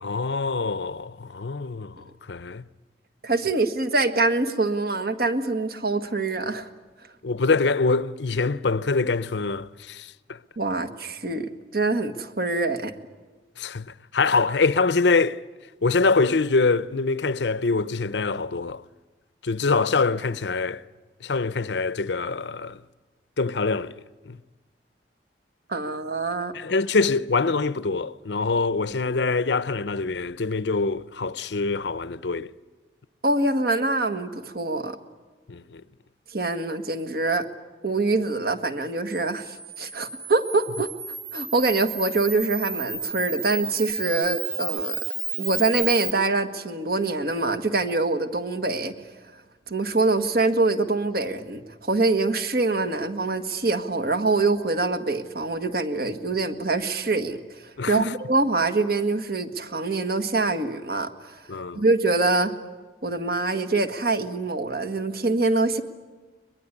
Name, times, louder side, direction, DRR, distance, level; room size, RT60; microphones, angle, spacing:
voice 1, 0.0-2.7 7.2-10.4 13.6-15.4 15.8-18.8 19.4-20.8 21.2-22.8 23.4-24.0 24.2-24.4 26.5-32.5 35.5-35.8 57.8-58.1 61.5-61.8, left 4 dB, 80° left, 0.7 m, -24 dB
voice 2, 3.2-6.7 10.6-12.9 25.7-26.5 33.2-35.0 36.3-37.4 37.8-40.9 41.3-45.0 45.4-48.9 49.7-61.4 61.7-62.5 63.0-65.8, right 3 dB, 55° right, 1.7 m, -24 dB
Camera, 39.1-46.1, right 5 dB, 20° right, 1.4 m, -33 dB
22.5 x 22.0 x 9.9 m
head